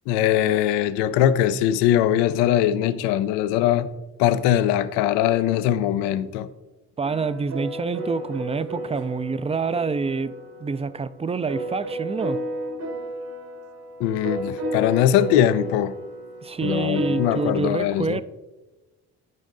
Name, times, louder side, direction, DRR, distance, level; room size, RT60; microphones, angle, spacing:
voice 1, 0.1-3.9 4.2-6.5 14.0-15.9 16.6-18.2, left 11 dB, 90° left, 0.6 m, -21 dB
voice 2, 7.0-12.4 16.4-18.2, right 4 dB, 15° right, 0.4 m, -27 dB
sound 1, 7.0-17.6, equal, 65° right, 2.2 m, -32 dB
12.5 x 5.2 x 3.8 m
supercardioid pair, 65°, 40 cm